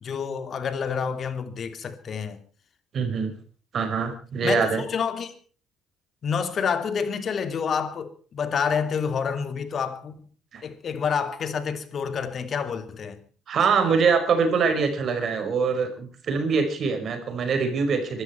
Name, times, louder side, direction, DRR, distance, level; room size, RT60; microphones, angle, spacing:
voice 1, 0.0-2.4 4.4-5.3 6.2-10.3 10.6-13.2, left 6 dB, 50° left, 2.7 m, -28 dB
voice 2, 2.9-3.3 3.7-4.8 10.5-10.6 13.5-18.2, right 5 dB, 55° right, 5.1 m, -24 dB
24.0 x 13.0 x 4.5 m
hypercardioid pair, 55°, 0 cm